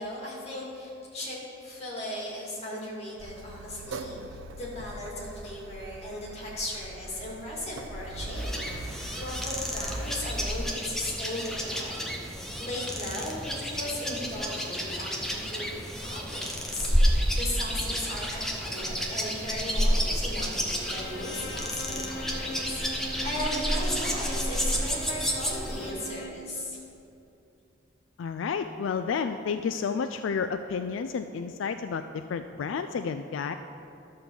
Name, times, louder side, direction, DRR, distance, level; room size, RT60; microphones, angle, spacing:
voice 1, 0.0-15.7 16.0-26.8, left 1 dB, 30° left, -5 dB, 2.4 m, -37 dB
Car, 3.2-10.5, right 2 dB, 85° right, 0.7 m, -40 dB
sound 1, 8.4-25.9, equal, ahead, 0.7 m, -30 dB
Bowed string instrument, 20.7-26.5, left 1 dB, 60° left, 0.7 m, -41 dB
voice 2, 28.2-33.5, left 6 dB, 80° left, 9 dB, 0.3 m, -31 dB
12.0 x 4.4 x 7.0 m, 2.7 s
head